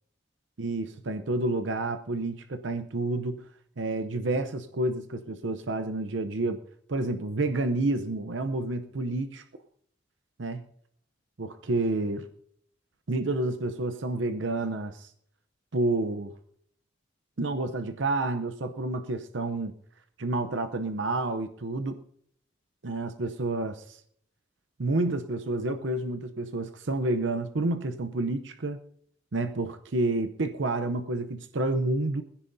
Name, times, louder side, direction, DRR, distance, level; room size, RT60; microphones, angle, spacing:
voice 1, 0.6-3.4 3.8-6.6 6.9-9.4 10.4-10.6 11.4-12.2 13.1-15.1 15.7-16.3 17.4-19.7 20.2-22.0 22.8-24.0 24.8-28.8 29.3-32.2, right 2 dB, 65° right, 9 dB, 0.7 m, -29 dB
20.5 x 15.5 x 2.7 m, 0.67 s
head